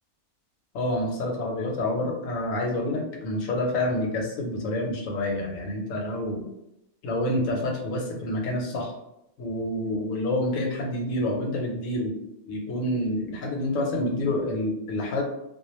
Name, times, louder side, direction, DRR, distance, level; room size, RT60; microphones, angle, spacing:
voice 1, 0.7-6.4 7.0-8.9 9.4-12.1 12.5-15.2, left 1 dB, 90° left, 1 dB, 1.0 m, -28 dB
2.3 x 2.1 x 3.0 m, 0.84 s
omnidirectional pair, 1.4 m